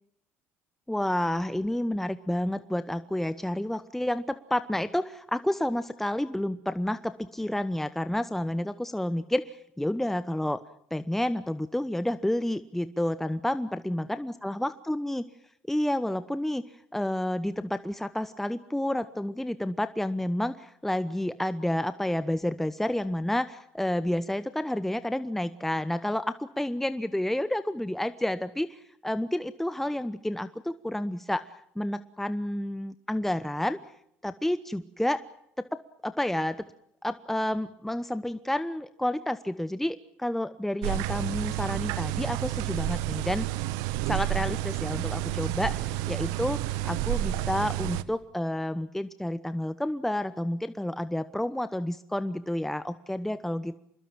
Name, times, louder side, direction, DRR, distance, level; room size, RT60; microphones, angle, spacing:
voice 1, 0.9-10.6 10.9-15.2 15.7-16.6 16.9-33.8 34.2-35.2 35.6-36.7 37.0-43.5 44.0-46.6 46.8-53.8, left 1 dB, 5° left, 13 dB, 1.0 m, -30 dB
sound 1, 40.8-48.0, right 15 dB, 75° right, 1.1 m, -30 dB
25.5 x 21.0 x 7.5 m, 0.72 s
supercardioid pair, 75°, 6 cm